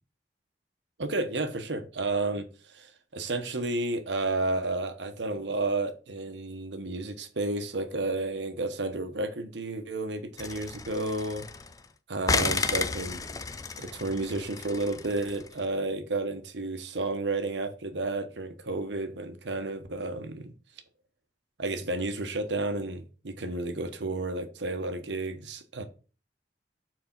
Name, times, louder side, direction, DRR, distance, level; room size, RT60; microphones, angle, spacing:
voice 1, 1.0-11.5 12.1-13.3 13.8-20.5 21.6-25.8, right 2 dB, 90° right, 1.0 m, -32 dB
sound 1, 10.4-11.8 12.3-15.5, left 4 dB, 20° left, 0.3 m, -32 dB
4.7 x 4.3 x 5.9 m
head